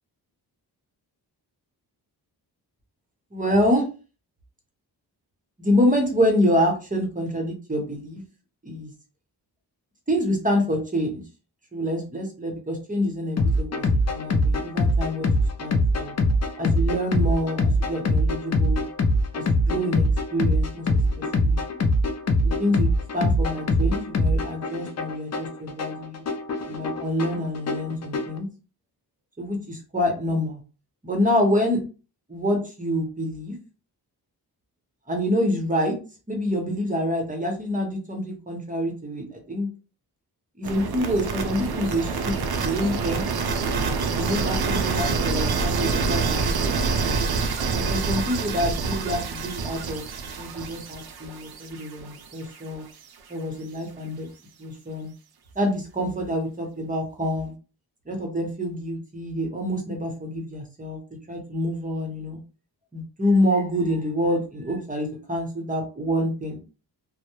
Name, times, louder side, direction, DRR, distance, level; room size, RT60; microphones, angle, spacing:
voice 1, 3.3-3.8 5.6-8.2 8.6-8.9 10.1-11.2 11.7-15.3 15.6-16.1 16.6-18.8 19.3-20.1 20.3-20.8 21.2-21.6 22.4-22.9 23.1-26.2 26.7-28.5 29.4-30.6 31.0-31.8 32.3-33.5 35.1-36.0 36.3-39.7 40.6-42.3 42.6-43.3 44.1-46.5 47.7-50.0 50.4-52.8 53.3-54.3 54.6-55.1 55.6-57.5 58.1-61.0 61.3-62.4 62.9-66.6, equal, 20° right, 2 dB, 0.8 m, -26 dB
sound 1, 13.4-28.4, left 1 dB, 40° left, 0.5 m, -23 dB
sound 2, 40.6-52.6, right 4 dB, 65° right, 0.5 m, -26 dB
2.2 x 2.0 x 2.9 m, 0.34 s
cardioid pair, 80°, 40 cm